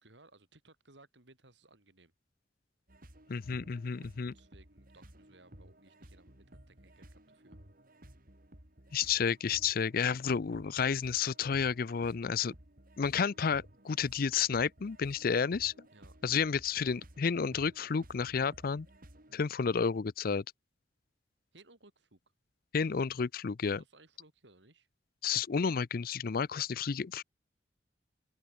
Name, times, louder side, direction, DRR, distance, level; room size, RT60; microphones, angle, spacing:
voice 1, 0.0-2.1 4.3-7.6 15.3-15.5 15.9-16.2 21.5-22.2 23.8-24.9, right 2 dB, 75° right, 4.3 m, -61 dB
sound 1, 2.9-19.5, right 1 dB, 50° right, 5.1 m, -56 dB
voice 2, 3.3-4.3 8.9-12.5 13.0-15.7 16.2-18.9 19.3-20.4 22.7-23.8 25.2-27.2, left 6 dB, 50° left, 0.5 m, -31 dB
open air
head